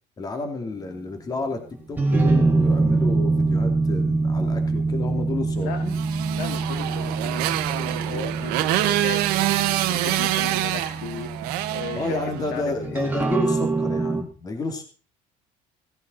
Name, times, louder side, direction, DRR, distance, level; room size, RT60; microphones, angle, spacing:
voice 1, 0.2-1.6 1.9-6.0 11.9-14.8, left 3 dB, 25° left, 5 dB, 2.6 m, -30 dB
sound 1, 1.7-14.2, right 3 dB, 10° right, 2.4 m, -25 dB
Motorcycle, 5.9-12.6, right 14 dB, 80° right, 1.2 m, -26 dB
voice 2, 6.3-9.2 9.9-11.3 11.7-12.2 12.5-13.2, left 7 dB, 80° left, 6 dB, 2.5 m, -36 dB
17.5 x 11.0 x 4.1 m, 0.38 s
cardioid pair, 140°, 16 cm